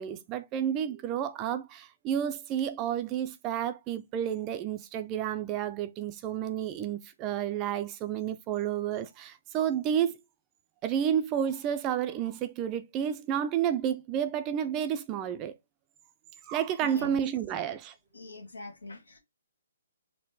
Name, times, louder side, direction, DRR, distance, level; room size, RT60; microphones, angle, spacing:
voice 1, 0.0-10.2 10.8-15.5 16.4-17.9, right 9 dB, 25° right, 0.4 m, -31 dB
voice 2, 16.8-17.2 18.1-19.2, left 3 dB, 85° left, 1.5 m, -43 dB
4.3 x 2.1 x 3.9 m
hypercardioid pair, 145°, 0 cm